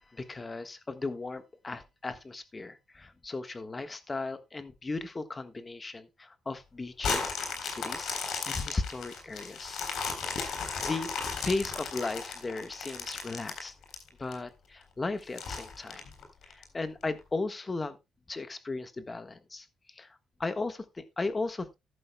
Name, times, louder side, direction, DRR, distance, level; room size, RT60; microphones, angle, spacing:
voice 1, 0.0-7.3 7.6-8.1 8.5-9.8 10.8-13.7 14.2-16.0 16.4-18.0 18.3-21.8, left 3 dB, 25° left, 1.3 m, -36 dB
sound 1, 7.0-14.3 14.8-14.9 15.4-16.6 17.2-17.3, left 5 dB, 75° left, 3.8 m, -35 dB
13.5 x 11.0 x 2.2 m
cardioid pair, 90°, 0 cm